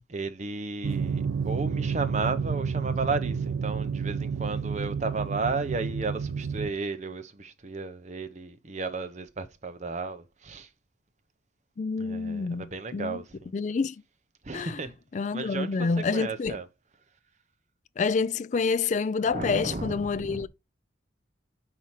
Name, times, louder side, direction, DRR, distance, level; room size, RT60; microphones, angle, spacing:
voice 1, 0.1-10.7 12.0-13.5 14.4-14.9 15.3-16.7 19.3-20.5, right 3 dB, 35° right, 0.7 m, -34 dB
sound 1, 0.8-6.7, right 6 dB, 90° right, 0.4 m, -30 dB
voice 2, 11.8-13.2 13.5-14.0 14.5-14.8 15.1-16.6 18.0-20.5, left 4 dB, 40° left, 0.3 m, -28 dB
4.8 x 4.3 x 5.7 m
head